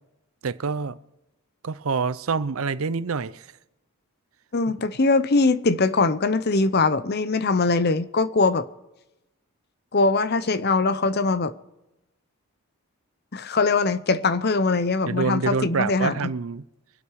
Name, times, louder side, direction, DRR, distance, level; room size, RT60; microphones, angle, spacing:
voice 1, 0.4-1.0 1.6-3.5 15.1-16.6, right 5 dB, 70° right, 0.6 m, -26 dB
voice 2, 4.5-8.7 9.9-11.5 13.3-16.3, left 3 dB, 45° left, 0.7 m, -22 dB
24.5 x 8.4 x 4.8 m
head